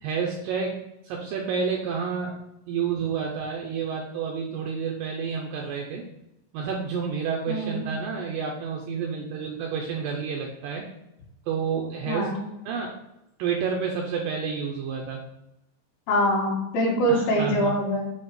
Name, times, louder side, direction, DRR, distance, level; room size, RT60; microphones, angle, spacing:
voice 1, 0.0-2.4 2.7-6.0 6.5-10.9 11.5-12.3 12.7-13.0 13.4-15.2 17.1-17.8, right 6 dB, 90° right, 0 dB, 2.0 m, -29 dB
voice 2, 7.5-7.8 12.1-12.5 16.1-18.0, equal, 65° left, -3 dB, 3.1 m, -24 dB
7.7 x 2.7 x 6.0 m, 0.87 s
omnidirectional pair, 4.8 m